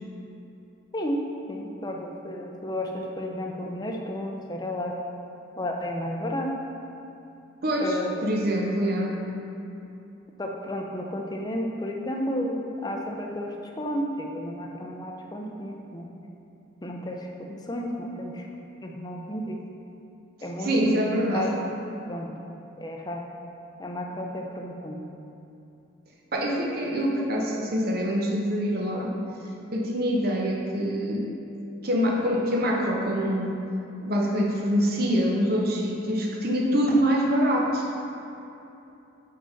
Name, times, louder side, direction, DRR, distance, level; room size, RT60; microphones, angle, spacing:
voice 1, 0.9-5.0 5.6-6.5 7.8-8.3 10.4-16.1 16.8-18.5 18.8-19.6 20.4-21.5 22.1-22.3 22.8-23.2 23.8-25.0, left 1 dB, 20° left, 1 dB, 0.5 m, -32 dB
voice 2, 7.6-9.2 20.6-21.5 26.3-29.1 29.7-31.3 31.8-33.6 34.0-37.8, equal, 45° right, 0 dB, 0.8 m, -25 dB
5.1 x 5.1 x 5.7 m, 2.8 s
head